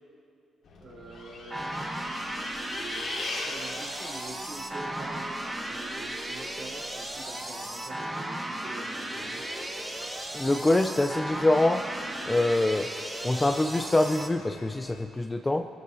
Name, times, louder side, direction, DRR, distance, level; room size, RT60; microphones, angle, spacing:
Bus, 0.6-15.0, left 3 dB, 70° left, 2.8 m, -44 dB
voice 1, 0.8-1.7 2.7-9.5, right 3 dB, 50° right, -3 dB, 3.8 m, -45 dB
sound 1, 1.5-14.3, right 1 dB, 15° right, 1.7 m, -35 dB
voice 2, 10.3-11.9 12.3-12.9 13.2-15.7, left 2 dB, 15° left, 6 dB, 0.5 m, -25 dB
25.0 x 14.5 x 2.8 m, 2.6 s
cardioid pair, 90°, 0 cm